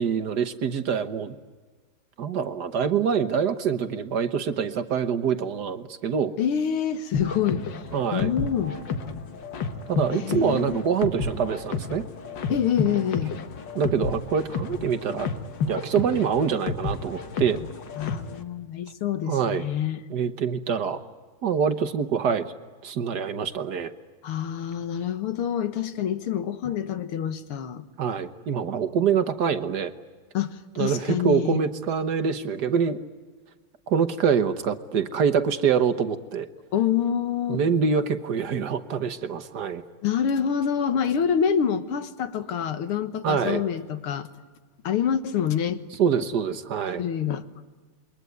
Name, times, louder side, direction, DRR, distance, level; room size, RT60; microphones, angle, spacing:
voice 1, 0.0-1.4 2.2-6.3 7.9-8.3 9.9-12.1 13.7-15.3 15.7-17.6 19.3-19.6 20.1-21.0 21.4-22.5 22.8-23.9 28.0-29.9 30.8-33.0 33.9-36.5 37.5-39.8 43.2-43.6 46.0-47.0, right 7 dB, 55° right, 10 dB, 1.5 m, -25 dB
voice 2, 6.4-7.6 8.1-8.8 10.1-10.8 12.5-13.4 18.0-20.0 24.2-27.9 30.3-31.6 36.7-37.6 40.0-44.3 44.8-45.8 47.0-47.6, left 8 dB, 85° left, 11 dB, 2.2 m, -26 dB
sound 1, 7.1-18.4, left 4 dB, 60° left, 2.1 m, -31 dB
28.0 x 22.5 x 9.4 m, 1.4 s
omnidirectional pair, 2.3 m